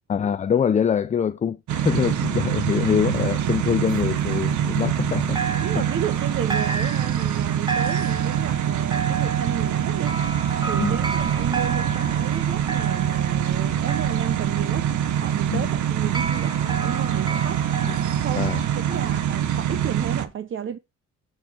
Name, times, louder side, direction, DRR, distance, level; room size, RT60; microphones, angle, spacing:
voice 1, 0.1-5.8 10.8-11.0 15.5-15.7 17.8-18.0 18.4-18.6, left 7 dB, 25° left, 0.4 m, -24 dB
sound 1, 1.7-20.2, right 10 dB, 80° right, 1.0 m, -24 dB
sound 2, 3.2-5.1 5.4-19.3, right 5 dB, 15° right, 1.2 m, -33 dB
voice 2, 5.6-10.2 10.7-17.7 18.2-18.6 18.8-20.8, right 9 dB, 40° right, 0.5 m, -33 dB
7.9 x 4.5 x 4.3 m
cardioid pair, 90°, 30 cm